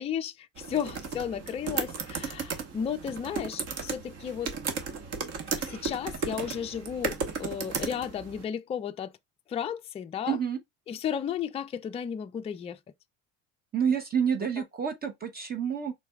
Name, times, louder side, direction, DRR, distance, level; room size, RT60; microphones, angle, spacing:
voice 1, 0.0-4.6 5.7-9.1 9.5-10.4 10.9-12.8 14.6-14.7, left 8 dB, 20° left, 0.3 m, -34 dB
sound 1, 0.6-8.4, right 5 dB, 45° right, 1.2 m, -35 dB
voice 2, 10.3-10.6 13.7-15.9, right 7 dB, 25° right, 0.7 m, -28 dB
5.7 x 4.1 x 2.3 m
cardioid pair, 145°, 35 cm